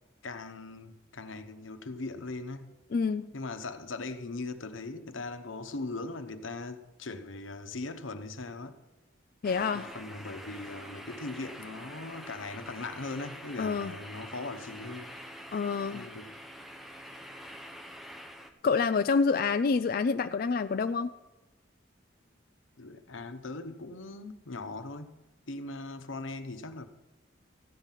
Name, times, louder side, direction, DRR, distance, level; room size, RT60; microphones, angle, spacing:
voice 1, 0.2-2.7 3.3-8.8 9.7-15.1 15.9-16.4 22.8-26.9, left 3 dB, 90° left, 0.9 m, -40 dB
voice 2, 2.9-3.3 9.4-9.9 13.6-13.9 15.5-16.1 18.6-21.1, left 5 dB, 50° left, 0.3 m, -27 dB
sound 1, 9.4-18.5, equal, ahead, 0.8 m, -46 dB
14.5 x 5.7 x 9.1 m
head